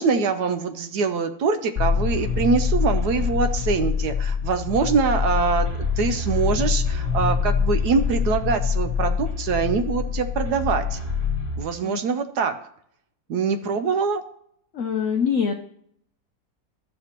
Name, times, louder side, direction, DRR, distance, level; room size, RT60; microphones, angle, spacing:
voice 1, 0.0-11.0 11.6-12.5 13.3-14.2, right 5 dB, 70° right, 8 dB, 1.0 m, -24 dB
sound 1, 1.8-11.6, left 6 dB, 20° right, 2.7 m, -25 dB
voice 2, 14.7-15.5, left 6 dB, 70° left, 4 dB, 0.7 m, -24 dB
13.0 x 6.6 x 2.9 m, 0.69 s
omnidirectional pair, 2.0 m